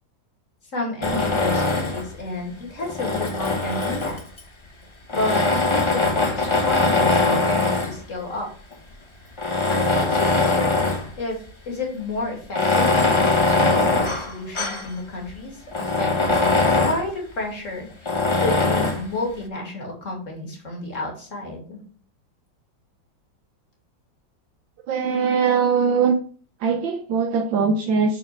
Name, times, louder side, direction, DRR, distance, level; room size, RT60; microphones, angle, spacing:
voice 1, 0.7-4.2 5.1-8.5 9.7-10.8 11.2-18.1 18.4-21.8, left 2 dB, 40° left, 0 dB, 2.7 m, -31 dB
Tools, 1.0-2.1 2.8-4.4 5.1-8.0 8.7-8.8 9.3-11.1 11.5-11.6 12.4-14.9 15.3-15.4 15.7-17.1 18.1-19.1, left 3 dB, 25° left, 0.7 m, -21 dB
voice 2, 24.9-26.2 26.6-28.2, right 5 dB, 85° right, 4 dB, 1.6 m, -21 dB
7.1 x 4.5 x 5.9 m, 0.43 s
omnidirectional pair, 2.0 m